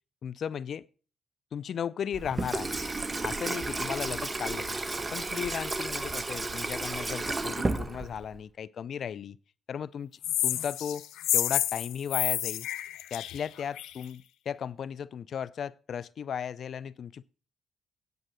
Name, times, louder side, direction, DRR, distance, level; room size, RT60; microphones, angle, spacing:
voice 1, 0.2-0.9 1.5-2.8 3.2-4.8 5.1-9.4 9.7-10.1 10.4-11.1 11.3-12.7 13.1-17.2, left 8 dB, 60° left, 0.4 m, -36 dB
Water tap faucet / Sink (filling or washing), 2.1-8.4, right 2 dB, 20° right, 1.2 m, -32 dB
sound 1, 10.2-14.0, left 13 dB, 85° left, 0.8 m, -30 dB
9.2 x 8.5 x 6.3 m
cardioid pair, 90°, 0 cm